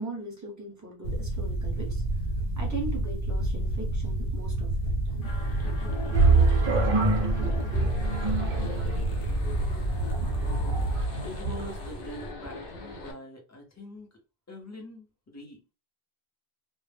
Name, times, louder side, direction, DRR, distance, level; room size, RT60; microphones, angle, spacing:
voice 1, 0.0-2.0 2.6-5.3, right 2 dB, 20° right, 0.8 m, -39 dB
sound 1, 1.0-11.0, right 1 dB, 80° left, 1.1 m, -30 dB
sound 2, 5.2-13.1, left 1 dB, 60° left, 0.7 m, -39 dB
sound 3, 6.1-11.7, right 3 dB, 55° right, 0.6 m, -26 dB
voice 2, 11.2-14.1 14.5-15.6, left 1 dB, 20° left, 0.5 m, -43 dB
2.1 x 2.0 x 3.2 m
omnidirectional pair, 1.1 m